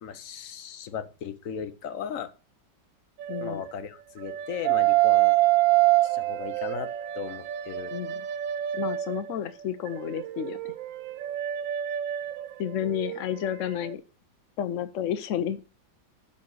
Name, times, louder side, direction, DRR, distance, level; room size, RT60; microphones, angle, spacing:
voice 1, 0.0-2.3 3.4-5.4 6.0-8.0, left 8 dB, 55° left, 11 dB, 1.0 m, -37 dB
sound 1, 3.2-3.7 4.2-9.3 9.9-13.4 13.7-13.9, right 16 dB, 80° right, 1.4 m, -26 dB
voice 2, 3.3-3.6 7.9-8.3 8.7-10.7 12.6-14.0 14.6-15.6, left 9 dB, 75° left, 12 dB, 0.7 m, -31 dB
11.5 x 4.3 x 6.3 m, 0.34 s
omnidirectional pair, 2.1 m